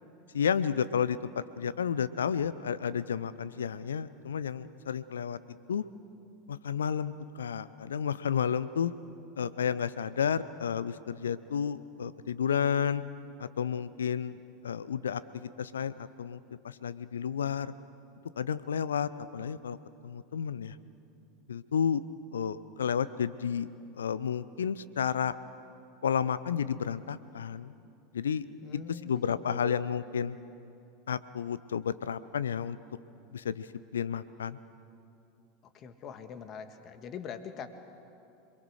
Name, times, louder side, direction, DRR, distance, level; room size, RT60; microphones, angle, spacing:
voice 1, 0.3-5.8 6.5-8.9 9.4-13.0 13.4-16.4 16.6-17.7 18.4-19.8 20.0-20.8 21.5-22.0 22.3-23.7 23.9-25.4 26.0-27.7 28.1-28.5 28.7-30.4 31.1-32.8 33.3-33.7 33.9-34.6, left 7 dB, 70° left, 16 dB, 0.7 m, -31 dB
voice 2, 28.6-29.8 35.7-37.7, left 7 dB, 35° left, 9 dB, 1.7 m, -43 dB
27.0 x 22.0 x 6.5 m, 2.7 s
figure-of-eight pair, 80°, 0 cm